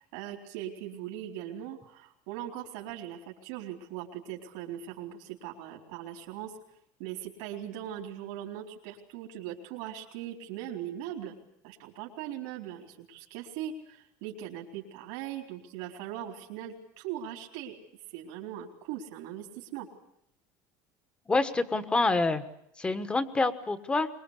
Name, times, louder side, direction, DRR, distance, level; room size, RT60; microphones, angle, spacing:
voice 1, 0.0-6.5 7.0-11.3 11.6-17.8 18.1-19.9, right 11 dB, 80° right, 0 dB, 4.0 m, -40 dB
voice 2, 21.3-22.4 22.8-24.1, left 3 dB, 10° left, 11 dB, 1.4 m, -27 dB
24.0 x 22.0 x 8.4 m, 0.73 s
cardioid pair, 165°, 9 cm